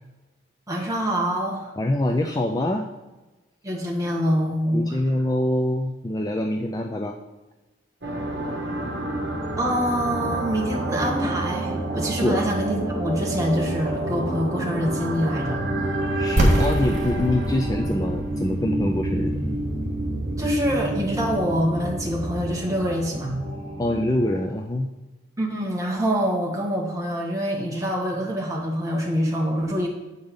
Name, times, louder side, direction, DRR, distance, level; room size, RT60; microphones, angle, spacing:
voice 1, 0.7-1.7 3.6-4.9 9.6-15.6 20.4-23.3 25.4-29.9, equal, 15° right, -2 dB, 1.4 m, -25 dB
voice 2, 1.8-2.8 4.7-7.2 12.2-12.4 16.2-19.4 23.8-24.9, left 1 dB, 20° left, 2 dB, 0.4 m, -24 dB
sound 1, 8.0-24.5, right 1 dB, 60° right, 1.6 m, -29 dB
sound 2, 16.4-22.1, right 1 dB, 40° right, 1.7 m, -27 dB
8.2 x 5.5 x 5.2 m, 1.1 s
head